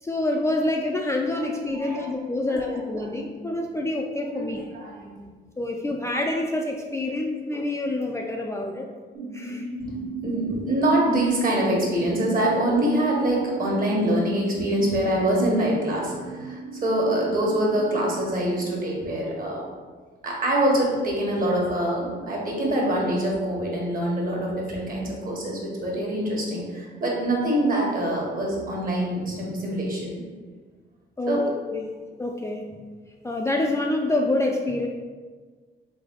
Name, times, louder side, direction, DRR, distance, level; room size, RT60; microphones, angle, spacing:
voice 1, 0.0-4.6 5.6-8.9 9.3-9.7 31.2-31.9 32.2-32.6 33.2-34.9, left 2 dB, 15° left, 0 dB, 0.4 m, -27 dB
voice 2, 1.7-2.1 2.5-2.6 2.9-3.0 4.3-5.2 9.8-19.6 20.2-30.1 31.3-31.4, right 1 dB, 45° right, -2 dB, 1.4 m, -25 dB
sound 1, 9.1-18.4, right 4 dB, 60° right, 1.2 m, -37 dB
3.4 x 3.4 x 3.8 m, 1.5 s
cardioid pair, 90°, 20 cm